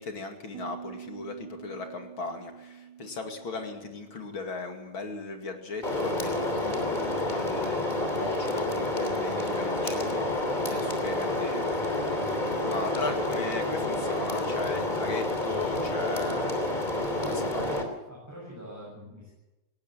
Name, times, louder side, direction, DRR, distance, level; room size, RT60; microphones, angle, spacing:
voice 1, 0.0-12.1 12.6-16.5 17.3-17.6, left 3 dB, 45° left, 5 dB, 2.9 m, -37 dB
Piano, 0.5-6.1, right 10 dB, 75° right, 2.7 m, -48 dB
sound 1, 5.8-17.8, left 1 dB, 15° left, 3.0 m, -29 dB
voice 2, 17.6-19.3, right 1 dB, 5° right, -5 dB, 7.9 m, -44 dB
18.0 x 18.0 x 8.9 m, 1.0 s
omnidirectional pair, 3.5 m